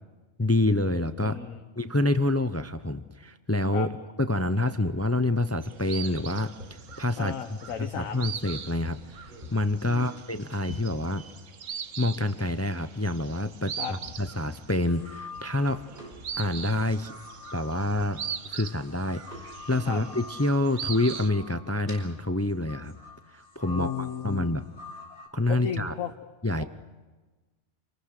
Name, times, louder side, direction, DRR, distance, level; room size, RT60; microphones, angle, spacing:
voice 1, 0.4-1.4 1.8-3.9 4.2-7.3 7.8-11.2 12.0-15.8 16.4-17.2 17.5-18.2 18.5-22.9 23.3-23.9 24.2-24.7 25.3-25.9 26.4-26.6, left 1 dB, 25° left, 11 dB, 0.3 m, -27 dB
voice 2, 1.2-1.6 3.7-3.9 7.2-8.2 9.8-10.2 13.8-13.9 19.8-20.0 23.7-24.5 25.5-26.1, left 8 dB, 70° left, 7 dB, 1.4 m, -34 dB
sound 1, 4.5-23.0, equal, 35° right, 5.2 m, -50 dB
sound 2, 5.6-21.3, right 7 dB, 60° right, 1.3 m, -41 dB
sound 3, 14.9-16.1 16.7-25.3, left 4 dB, 45° left, 3.3 m, -46 dB
27.5 x 19.5 x 6.6 m, 1.3 s
omnidirectional pair, 1.5 m